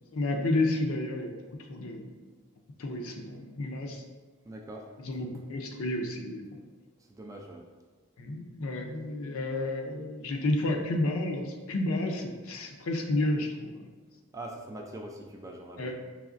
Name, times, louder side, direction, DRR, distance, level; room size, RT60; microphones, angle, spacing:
voice 1, 0.1-1.4 1.7-2.2 2.8-4.0 5.0-6.4 8.2-13.9 15.8-15.9, left 2 dB, 70° left, 3 dB, 0.5 m, -31 dB
voice 2, 4.4-4.9 7.1-7.7 14.3-15.9, right 1 dB, 15° right, 1 dB, 0.3 m, -42 dB
4.8 x 3.2 x 2.5 m, 1.4 s
head